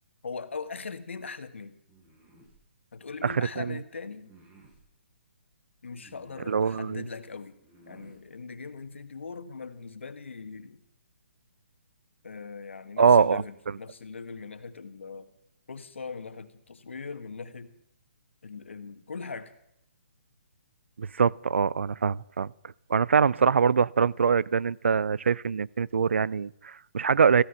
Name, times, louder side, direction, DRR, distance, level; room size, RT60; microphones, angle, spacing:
voice 1, 0.2-1.8 2.9-4.3 5.8-7.6 7.9-10.8 12.2-15.3 15.7-17.7 18.4-19.5, left 4 dB, 85° left, 10 dB, 1.5 m, -40 dB
sound 1, 1.9-2.6 4.2-4.8 6.0-6.7 7.6-8.2, right 2 dB, 20° right, 8.0 m, -56 dB
voice 2, 3.2-3.7 6.5-7.0 13.0-13.4 21.0-22.5 22.9-27.4, right 6 dB, 80° right, 23 dB, 0.5 m, -23 dB
15.5 x 13.5 x 5.7 m, 0.79 s
hypercardioid pair, 155°, 6 cm